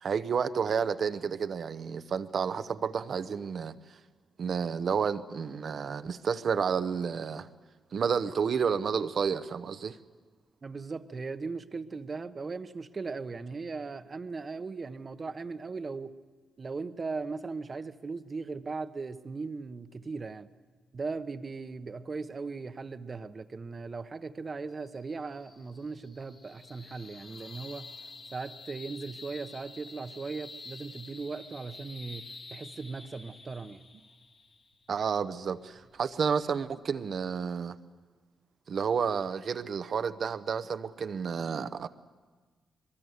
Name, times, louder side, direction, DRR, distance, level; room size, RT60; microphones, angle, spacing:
voice 1, 0.0-3.7 4.4-7.5 7.9-10.0 34.9-37.8 38.7-41.9, right 6 dB, 65° right, 0.9 m, -30 dB
voice 2, 10.6-16.2 16.6-20.5 20.9-27.9 28.3-33.9, right 4 dB, 45° right, 1.1 m, -38 dB
sound 1, 24.7-37.3, left 3 dB, 45° left, 2.4 m, -49 dB
23.0 x 21.5 x 8.2 m
cardioid pair, 60°, 0 cm